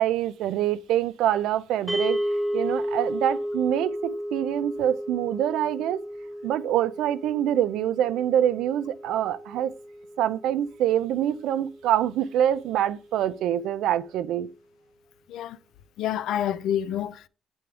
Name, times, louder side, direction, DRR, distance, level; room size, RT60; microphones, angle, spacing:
voice 1, 0.0-2.2 2.5-6.0 6.4-9.7 10.2-14.5, right 11 dB, 90° right, 0.4 m, -25 dB
sound 1, 1.9-12.2, equal, ahead, 0.5 m, -33 dB
voice 2, 16.0-17.3, left 10 dB, 85° left, 0.4 m, -28 dB
8.3 x 3.4 x 3.4 m
cardioid pair, 90°, 0 cm